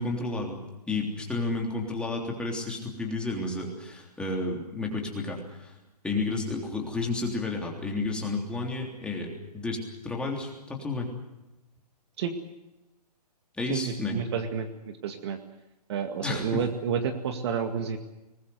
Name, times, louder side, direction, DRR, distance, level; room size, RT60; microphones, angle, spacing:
voice 1, 0.0-5.7 6.0-11.1 13.6-14.2 16.2-16.5, left 3 dB, 5° left, 0 dB, 3.3 m, -31 dB
voice 2, 13.7-14.7 15.0-15.4 15.9-18.0, right 7 dB, 40° right, 7 dB, 2.1 m, -30 dB
23.5 x 20.5 x 7.9 m, 0.97 s
hypercardioid pair, 155°, 21 cm